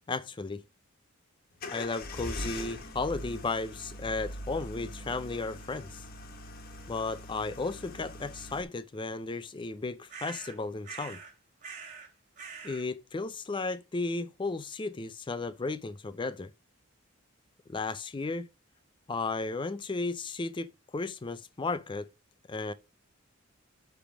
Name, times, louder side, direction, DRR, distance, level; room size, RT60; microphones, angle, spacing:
voice 1, 0.1-0.6 1.7-6.0 6.9-11.2 12.6-16.5 17.7-18.5 19.1-22.1 22.5-22.7, left 3 dB, 25° left, 0.4 m, -34 dB
sound 1, 1.6-8.6, left 1 dB, 45° left, 1.4 m, -42 dB
sound 2, 10.1-10.6 10.8-11.3 11.6-12.1 12.4-12.9, right 6 dB, 35° right, 3.2 m, -44 dB
10.0 x 3.5 x 6.0 m
head